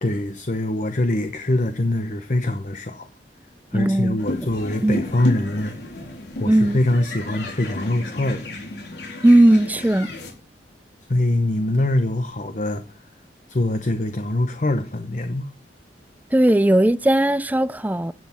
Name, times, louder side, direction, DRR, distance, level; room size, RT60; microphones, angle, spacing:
voice 1, 0.0-3.1 3.7-5.8 6.4-8.5 11.1-12.8 13.5-15.5, left 1 dB, 45° left, 0.9 m, -23 dB
voice 2, 3.7-4.2 4.8-5.0 6.4-6.8 9.2-10.1 16.3-18.1, right 1 dB, 10° right, 0.4 m, -17 dB
sound 1, 4.2-10.3, left 1 dB, 80° left, 3.8 m, -33 dB
12.5 x 8.4 x 4.4 m
head